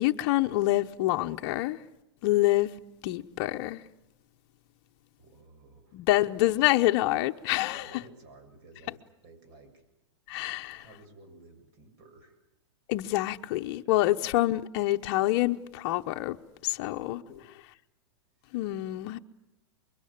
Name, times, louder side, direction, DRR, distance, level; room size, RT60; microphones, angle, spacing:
voice 1, 0.0-1.8 2.2-2.7 3.0-3.8 5.9-8.0 10.3-10.9 12.9-16.4 16.6-17.2 18.5-19.2, left 16 dB, 50° left, 0.9 m, -26 dB
voice 2, 5.2-6.1 7.7-9.8 10.8-12.4 17.0-17.5 19.1-19.2, right 3 dB, 50° right, 7.4 m, -54 dB
24.5 x 22.5 x 8.7 m
supercardioid pair, 140°, 14 cm